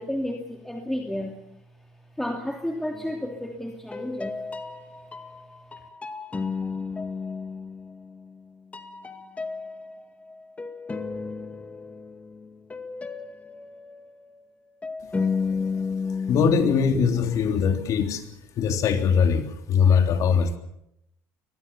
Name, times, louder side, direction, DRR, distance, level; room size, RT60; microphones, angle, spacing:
voice 1, 0.0-1.4 2.2-4.4, left 1 dB, 5° left, 2 dB, 2.8 m, -31 dB
sound 1, 2.9-3.5 3.9-8.5 8.7-17.5, left 5 dB, 20° left, 2.2 m, -33 dB
voice 2, 16.1-18.3 18.6-20.6, left 6 dB, 55° left, 5 dB, 3.5 m, -22 dB
23.0 x 20.0 x 7.2 m, 0.80 s
supercardioid pair, 105°, 7 cm